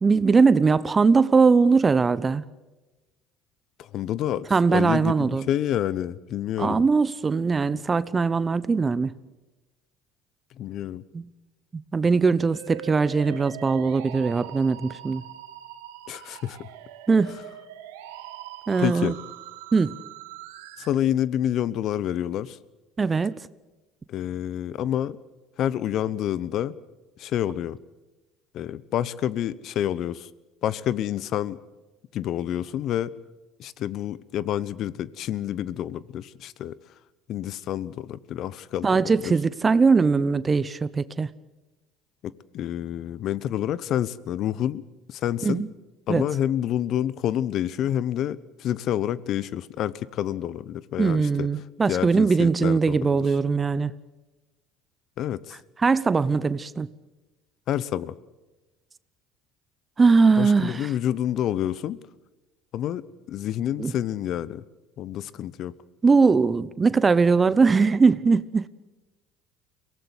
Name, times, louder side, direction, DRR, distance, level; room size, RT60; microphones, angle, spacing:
voice 1, 0.0-2.4 4.5-5.4 6.6-9.1 11.1-11.3 11.9-15.2 17.1-17.4 18.7-19.1 19.7-19.9 23.0-23.3 38.8-41.3 45.4-45.7 46.1-46.2 51.0-53.9 55.8-56.9 60.0-60.9 63.8-63.9 66.0-68.7, right 4 dB, 25° right, 0.8 m, -20 dB
voice 2, 3.8-6.9 10.6-11.0 16.1-16.7 18.8-19.2 20.8-22.6 24.1-25.2 25.6-26.7 27.2-27.8 28.5-30.3 30.6-31.6 32.1-33.1 33.6-36.8 37.3-39.3 42.2-44.8 45.1-45.6 46.1-51.5 51.9-53.2 55.2-55.6 57.7-58.1 60.4-62.0 62.7-64.6 65.0-65.7, left 11 dB, 60° left, 0.9 m, -28 dB
Musical instrument, 12.5-20.9, right 13 dB, 85° right, 1.6 m, -42 dB
23.0 x 17.5 x 8.1 m
hypercardioid pair, 75°, 0 cm